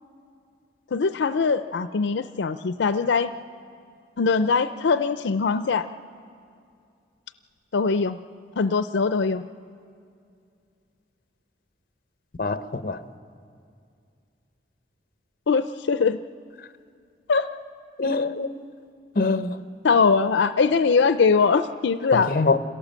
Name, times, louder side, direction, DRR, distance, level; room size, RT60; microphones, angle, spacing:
voice 1, 0.9-3.3 4.2-5.9 7.7-8.2 8.6-9.4 15.5-16.2 17.3-17.5 19.8-22.3, left 5 dB, 85° left, 0.5 m, -21 dB
voice 2, 12.4-13.0 18.0-18.6 19.1-19.6 22.1-22.6, left 3 dB, 50° left, 0.8 m, -24 dB
26.5 x 17.0 x 7.4 m
head